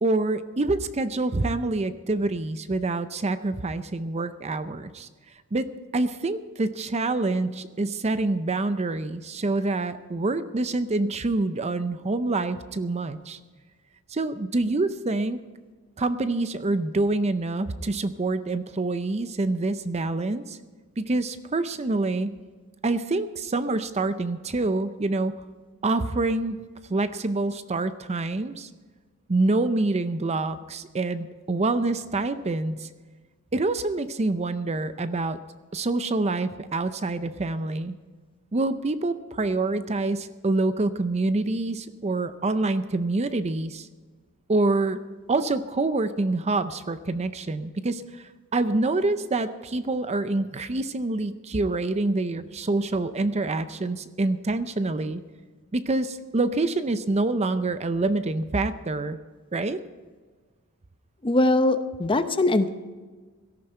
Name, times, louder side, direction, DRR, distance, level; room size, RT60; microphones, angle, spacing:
voice 1, 0.0-5.1 5.5-5.7 5.9-13.4 14.1-15.4 16.0-20.6 21.0-22.3 22.8-25.4 25.8-28.7 29.3-32.9 33.5-35.4 35.7-38.0 38.5-43.9 44.5-45.0 45.3-48.2 48.5-55.2 55.7-59.2 59.5-59.8, right 2 dB, 30° right, 12 dB, 0.5 m, -26 dB
voice 2, 61.2-62.7, left 2 dB, 25° left, 10 dB, 0.7 m, -21 dB
17.0 x 13.5 x 4.4 m, 1.4 s
head